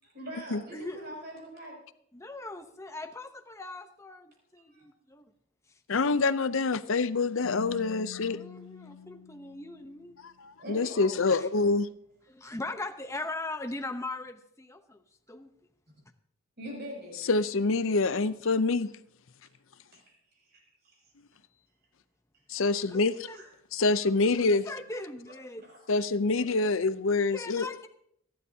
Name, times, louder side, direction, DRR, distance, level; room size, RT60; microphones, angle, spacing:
voice 1, 0.1-1.8 4.7-4.9 10.6-11.1 16.6-17.2 19.9-20.0 20.5-20.6 20.8-21.0 23.3-23.5 25.6-25.8 26.5-26.6, equal, 45° right, 7.1 m, -42 dB
voice 2, 2.1-5.3 8.3-10.2 11.4-11.5 12.3-15.0 15.3-15.5 22.9-23.4 24.4-25.6 27.3-27.9, left 2 dB, 15° left, 0.8 m, -40 dB
voice 3, 5.9-8.4 10.2-11.9 17.3-18.9 22.5-23.1 23.7-24.6 25.9-27.7, left 3 dB, 65° left, 0.6 m, -26 dB
Keyboard (musical), 7.4-10.2, left 7 dB, 90° left, 0.9 m, -46 dB
27.0 x 11.0 x 2.8 m
head